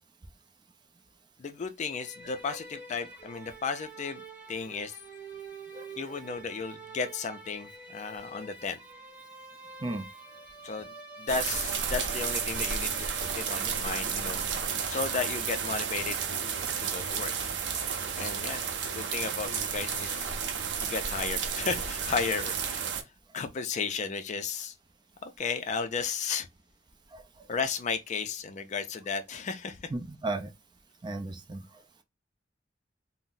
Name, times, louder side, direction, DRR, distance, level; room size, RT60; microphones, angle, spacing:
voice 1, 1.4-4.2 4.5-5.0 6.0-8.8 10.6-14.4 14.9-17.3 18.1-20.3 20.8-22.8 23.3-24.7 25.2-26.5 27.5-29.9, left 5 dB, 40° left, 0.4 m, -34 dB
sound 1, 1.8-13.9, right 3 dB, 10° right, 1.2 m, -47 dB
sound 2, 11.3-23.0, right 6 dB, 75° right, 0.5 m, -32 dB
voice 2, 29.9-30.5 31.0-31.6, right 2 dB, 25° right, 0.4 m, -34 dB
2.6 x 2.0 x 3.8 m
head